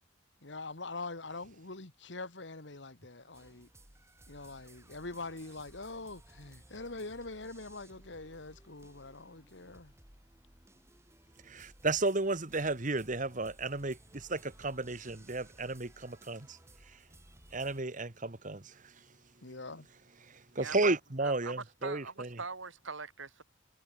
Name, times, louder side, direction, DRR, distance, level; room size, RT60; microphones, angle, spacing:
voice 1, 0.4-3.7 4.3-9.9 19.4-19.9, left 3 dB, 65° left, 1.9 m, -44 dB
sound 1, 3.3-17.8, right 1 dB, 15° right, 3.9 m, -59 dB
voice 2, 11.5-16.6 17.5-18.7 20.5-22.3, right 2 dB, 40° right, 1.5 m, -33 dB
voice 3, 21.2-23.4, right 4 dB, 85° right, 3.6 m, -42 dB
head